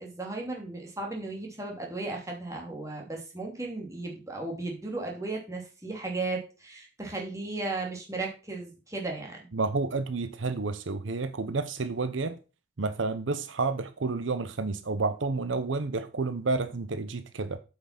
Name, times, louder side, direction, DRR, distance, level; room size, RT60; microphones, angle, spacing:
voice 1, 0.0-9.5, right 2 dB, 15° right, 2.7 m, -35 dB
voice 2, 9.5-12.4 12.8-17.6, right 3 dB, 75° right, 0.8 m, -30 dB
8.4 x 6.0 x 5.8 m
head